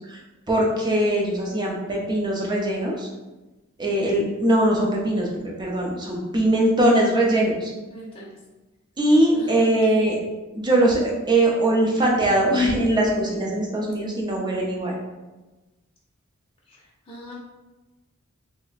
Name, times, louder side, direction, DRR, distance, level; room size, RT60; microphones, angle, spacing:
voice 1, 0.5-3.1 3.8-5.3 5.6-7.7 9.0-10.2 10.5-15.0, right 1 dB, 20° right, -2 dB, 0.6 m, -21 dB
voice 2, 7.9-8.4 9.3-10.2 16.7-17.4, left 2 dB, 25° left, -5 dB, 0.6 m, -39 dB
3.3 x 2.1 x 3.9 m, 1.1 s
head